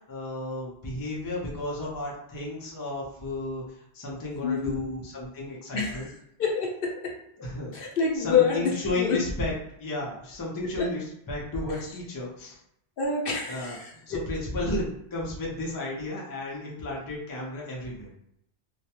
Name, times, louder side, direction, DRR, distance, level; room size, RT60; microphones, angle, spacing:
voice 1, 0.1-3.6 3.9-6.1 7.4-7.7 8.1-9.5 9.8-12.6 13.5-13.8 14.1-18.1, left 1 dB, 25° left, -4 dB, 0.5 m, -33 dB
voice 2, 4.4-4.9 5.7-6.1 6.4-7.1 7.7-9.2 10.8-10.9 13.0-14.2, left 6 dB, 65° left, -1 dB, 0.7 m, -27 dB
2.3 x 2.1 x 2.8 m, 0.76 s
omnidirectional pair, 1.0 m